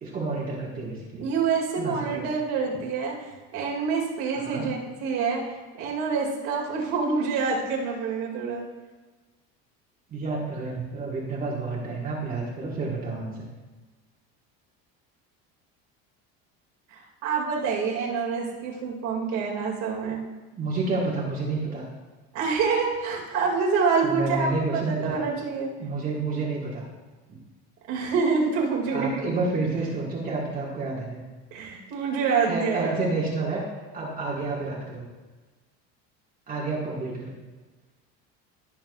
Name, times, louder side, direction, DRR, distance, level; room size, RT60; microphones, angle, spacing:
voice 1, 0.0-1.3 1.8-2.3 4.3-4.7 10.1-13.4 20.6-21.9 24.0-25.2 25.8-26.8 28.9-31.2 32.4-33.6 33.9-35.0 36.5-37.4, right 3 dB, 30° right, -5 dB, 1.5 m, -29 dB
voice 2, 1.2-5.4 5.8-8.7 16.9-20.2 22.3-25.7 27.9-29.4 31.5-32.9, right 5 dB, 65° right, -1 dB, 2.2 m, -27 dB
16.0 x 5.9 x 2.3 m, 1.3 s
cardioid pair, 150°, 31 cm